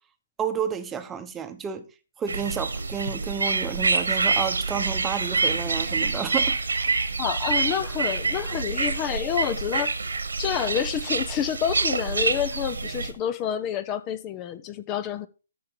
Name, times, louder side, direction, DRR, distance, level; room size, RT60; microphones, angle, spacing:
voice 1, 0.4-1.9 2.2-6.6, right 7 dB, 15° right, 1.1 m, -31 dB
sound 1, 2.3-13.1, right 4 dB, 75° right, 1.7 m, -26 dB
voice 2, 7.2-9.9 10.4-15.3, left 9 dB, 25° left, 0.8 m, -28 dB
13.5 x 5.8 x 4.8 m
figure-of-eight pair, 135°, 0 cm